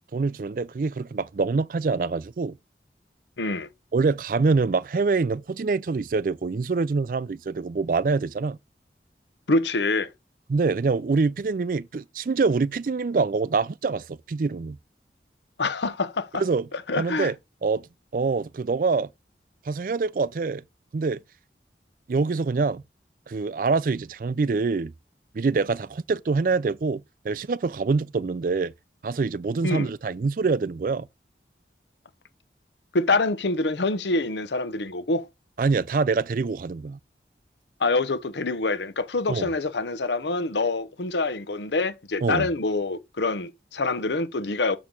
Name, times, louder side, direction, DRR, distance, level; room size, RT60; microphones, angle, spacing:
voice 1, 0.1-2.6 3.9-8.6 10.5-14.8 16.3-16.6 17.0-17.3 17.6-17.9 18.1-19.1 19.7-20.6 20.9-21.2 22.1-22.8 23.3-24.9 25.3-28.7 29.0-31.1 35.6-37.0 39.3-39.5 42.2-42.5, right 4 dB, 50° right, 0.4 m, -25 dB
voice 2, 3.4-3.7 9.5-10.1 15.6-16.4 16.7-17.3 29.6-29.9 32.9-35.3 37.8-44.8, left 3 dB, 85° left, 0.8 m, -26 dB
7.0 x 6.4 x 3.8 m
head